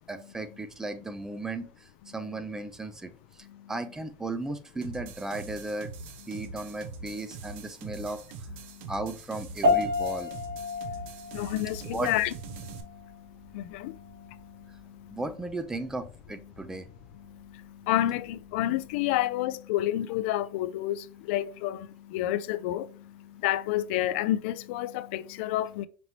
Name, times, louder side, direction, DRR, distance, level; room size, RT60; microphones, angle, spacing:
voice 1, 0.1-5.9 6.3-8.2 8.9-10.3 11.9-12.1 15.1-16.9, right 2 dB, 10° right, 0.4 m, -36 dB
sound 1, 4.8-12.8, right 4 dB, 80° right, 0.8 m, -43 dB
sound 2, 9.6-19.2, left 2 dB, 50° right, 1.5 m, -33 dB
voice 2, 10.7-15.2 16.7-16.8 17.2-25.9, left 14 dB, 85° left, 0.4 m, -31 dB
5.2 x 3.0 x 2.7 m
cardioid pair, 165°, 7 cm